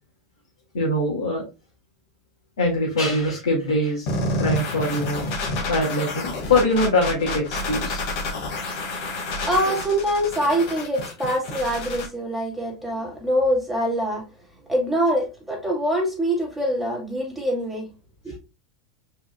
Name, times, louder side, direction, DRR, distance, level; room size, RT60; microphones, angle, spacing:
voice 1, 0.7-1.5 2.6-4.1 4.4-5.3 5.7-8.0, left 1 dB, 90° left, 1.9 m, -23 dB
sound 1, 4.1-12.1, left 2 dB, 60° left, 1.9 m, -29 dB
voice 2, 9.5-14.2 14.7-17.9 18.2-18.4, equal, 5° right, 2.5 m, -24 dB
5.2 x 4.2 x 2.2 m
hypercardioid pair, 105°, 3 cm